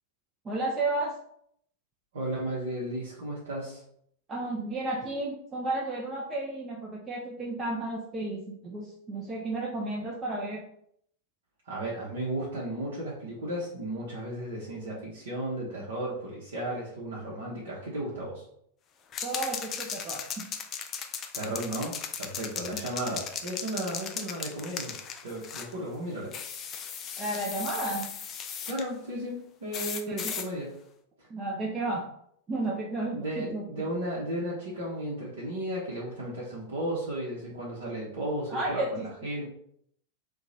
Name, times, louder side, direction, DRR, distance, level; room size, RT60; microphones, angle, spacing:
voice 1, 0.4-1.2 4.3-10.6 19.2-20.5 27.2-28.1 30.1-30.3 31.3-32.1 32.5-33.6 38.5-39.1, right 2 dB, 20° right, -2 dB, 0.5 m, -32 dB
voice 2, 2.1-3.8 11.7-18.4 21.3-24.9 25.2-26.3 28.6-30.7 31.2-31.3 33.1-39.5, right 1 dB, 65° right, -6 dB, 0.9 m, -34 dB
sound 1, 19.1-25.7 26.3-28.8 29.7-30.5, left 7 dB, 30° left, 0.4 m, -37 dB
2.8 x 2.3 x 4.0 m, 0.69 s
figure-of-eight pair, 90°, 0 cm